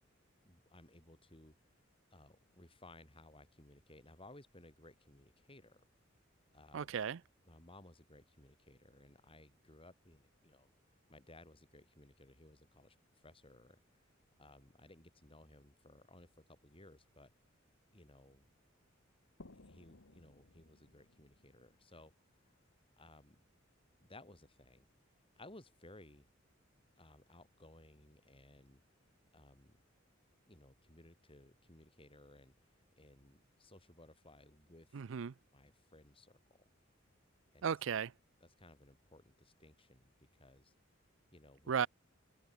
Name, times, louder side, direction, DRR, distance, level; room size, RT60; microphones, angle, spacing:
voice 1, 0.4-1.6 2.1-5.8 6.5-6.9 7.5-10.7 11.1-13.0 13.2-13.8 14.4-17.3 17.9-18.5 19.5-22.1 23.0-23.4 24.0-24.9 25.4-26.3 27.0-28.8 29.3-29.8 30.5-32.5 33.0-35.0 35.5-36.4 37.5-37.8 38.4-40.7 41.3-41.7, left 2 dB, 25° left, 5.8 m, -60 dB
voice 2, 6.7-7.2 34.9-35.3 37.6-38.1 41.7-41.9, right 7 dB, 70° right, 0.5 m, -35 dB
sound 1, 19.4-22.9, left 2 dB, 70° left, 1.9 m, -61 dB
head